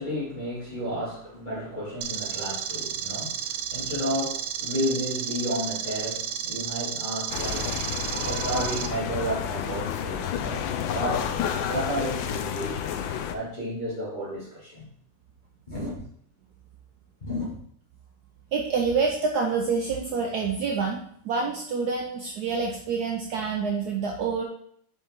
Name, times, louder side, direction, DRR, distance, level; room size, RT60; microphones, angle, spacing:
voice 1, 0.0-7.9 8.2-11.4 11.7-14.9 15.7-16.0 17.2-17.6, equal, 25° left, -7 dB, 2.7 m, -32 dB
sound 1, 2.0-8.9, right 9 dB, 85° right, 1.3 m, -32 dB
sound 2, 7.3-13.4, left 9 dB, 80° left, 1.4 m, -30 dB
voice 2, 8.1-8.5 18.5-24.5, right 5 dB, 65° right, 1 dB, 1.1 m, -27 dB
5.6 x 5.4 x 3.7 m, 0.65 s
omnidirectional pair, 2.1 m